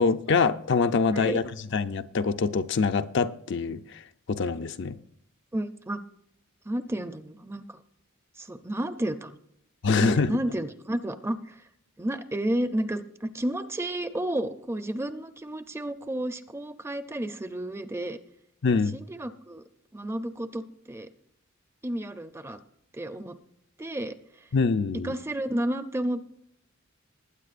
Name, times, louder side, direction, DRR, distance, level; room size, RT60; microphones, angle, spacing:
voice 1, 0.0-1.4 1.7-4.0 4.3-5.0 9.8-10.4 18.6-18.9 24.5-25.1, left 4 dB, 60° left, 0.5 m, -24 dB
voice 2, 1.1-1.4 5.5-6.0 6.7-7.8 8.4-9.4 9.9-11.6 12.0-18.2 18.9-19.6 19.9-21.1 21.8-22.6 22.9-23.4 23.8-24.2 25.0-26.2, right 1 dB, 10° right, 0.5 m, -31 dB
20.0 x 9.0 x 2.5 m
head